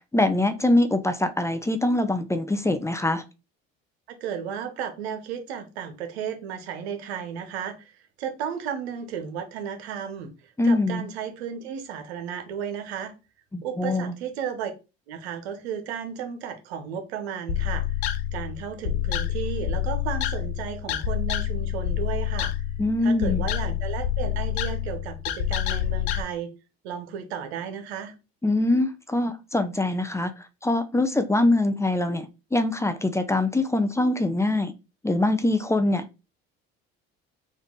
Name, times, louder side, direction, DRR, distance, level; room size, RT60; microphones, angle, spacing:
voice 1, 0.1-3.2 10.6-11.0 13.5-14.1 22.8-23.4 28.4-34.7 35.0-36.0, left 2 dB, 10° left, 0.5 m, -23 dB
voice 2, 4.1-13.1 13.6-14.7 15.1-22.5 23.0-26.5 26.8-28.1, right 8 dB, 90° right, 0.9 m, -34 dB
sound 1, 17.5-26.2, left 11 dB, 85° left, 0.5 m, -28 dB
3.7 x 2.6 x 3.7 m
supercardioid pair, 75°, 31 cm